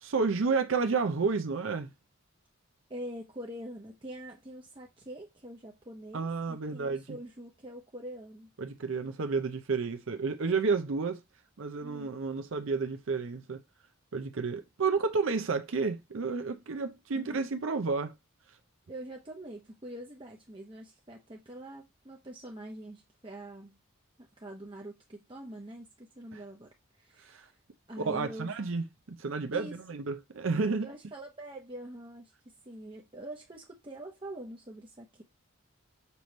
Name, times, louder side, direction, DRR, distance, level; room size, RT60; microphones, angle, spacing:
voice 1, 0.0-1.9 6.1-7.2 8.6-11.2 11.6-13.6 14.1-18.1 26.3-26.4 27.2-27.5 28.0-30.9, right 4 dB, 70° right, 0.6 m, -31 dB
voice 2, 2.9-8.5 11.8-12.1 17.1-17.4 18.9-23.8 24.2-27.6 27.9-28.5 29.5-29.7 30.8-32.3 32.6-35.2, right 1 dB, 25° right, 0.8 m, -44 dB
6.8 x 3.1 x 5.2 m
head